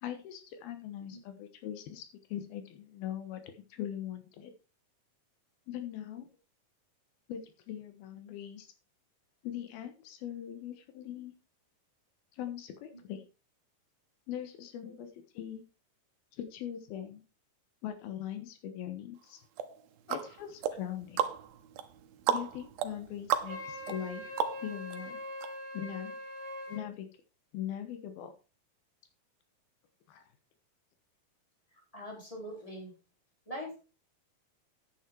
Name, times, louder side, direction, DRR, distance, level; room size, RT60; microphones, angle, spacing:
voice 1, 0.0-2.0 2.3-4.5 5.7-6.3 7.3-8.7 9.4-11.3 12.3-13.3 14.3-15.1 15.3-15.6 16.3-17.2 17.8-19.4 20.1-21.2 22.3-24.4 24.6-25.2 25.7-26.2 26.7-27.1 27.5-28.3 30.1-30.2, left 10 dB, 90° left, 8 dB, 3.1 m, -41 dB
sound 1, 19.6-25.0 25.4-25.5, right 9 dB, 90° right, 2.7 m, -35 dB
Wind instrument woodwind instrument, 23.5-26.8, left 1 dB, 30° right, 1.1 m, -42 dB
voice 2, 31.9-32.9 33.5-33.8, equal, 10° left, -1 dB, 4.2 m, -42 dB
9.3 x 9.1 x 4.6 m, 0.33 s
omnidirectional pair, 4.2 m